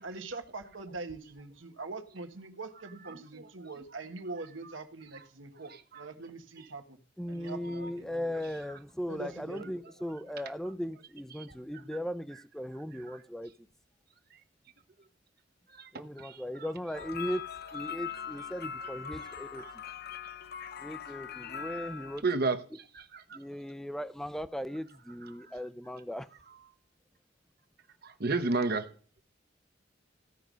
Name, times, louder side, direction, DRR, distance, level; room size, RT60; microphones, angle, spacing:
voice 1, 0.0-7.0 7.3-8.4 9.1-9.7, right 3 dB, 85° right, 1.4 m, -43 dB
voice 2, 7.2-13.5 15.9-17.4 17.7-19.6 20.8-22.2 23.3-26.3, equal, ahead, 0.5 m, -38 dB
sound 1, 16.9-22.2, left 7 dB, 55° left, 0.6 m, -41 dB
voice 3, 22.2-22.6 22.9-23.4 28.0-28.9, right 3 dB, 55° right, 1.0 m, -30 dB
15.5 x 5.3 x 6.2 m
head